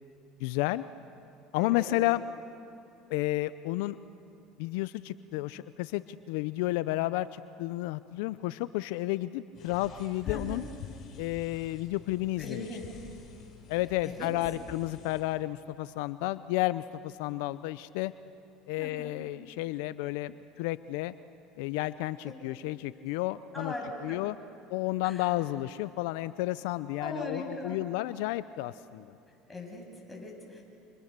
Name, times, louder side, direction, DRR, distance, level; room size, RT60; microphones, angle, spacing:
voice 1, 0.4-0.8 1.5-2.2 3.1-4.0 4.6-10.6 11.2-12.7 13.7-18.1 18.7-21.1 21.6-23.7 24.0-24.3 24.7-29.1, left 17 dB, 75° left, 15 dB, 0.6 m, -32 dB
voice 2, 1.6-2.0 10.2-10.6 12.4-12.8 14.0-14.3 18.8-19.1 23.5-24.2 25.0-25.3 27.0-27.8 29.5-30.6, left 2 dB, 10° left, -1 dB, 8.0 m, -40 dB
sound 1, 9.5-15.2, left 6 dB, 50° left, 7.2 m, -45 dB
29.5 x 27.5 x 6.8 m, 2.7 s
supercardioid pair, 90°, 0 cm